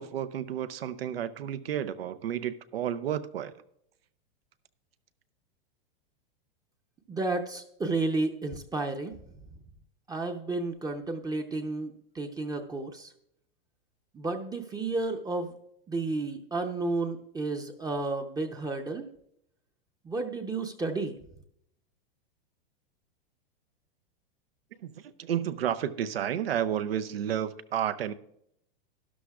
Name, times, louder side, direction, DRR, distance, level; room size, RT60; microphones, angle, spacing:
voice 1, 0.0-3.5 24.8-24.9 25.2-28.1, right 10 dB, 80° right, 0.7 m, -31 dB
voice 2, 7.1-9.3 10.1-13.1 14.1-15.6 15.9-19.1 20.0-21.2, right 3 dB, 15° right, 0.7 m, -32 dB
12.5 x 11.5 x 2.4 m
hypercardioid pair, 115°, 29 cm